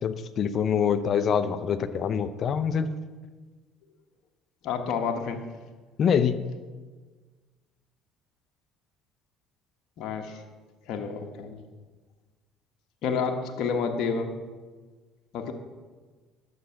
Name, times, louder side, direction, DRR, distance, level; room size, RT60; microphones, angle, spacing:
voice 1, 0.0-2.9 6.0-6.4, left 7 dB, 50° left, 11 dB, 0.7 m, -25 dB
voice 2, 4.6-5.4 10.0-10.4 10.9-11.6 13.0-14.3 15.3-15.5, left 5 dB, 65° left, 4 dB, 1.2 m, -29 dB
11.0 x 7.6 x 5.8 m, 1.4 s
supercardioid pair, 85°, 0 cm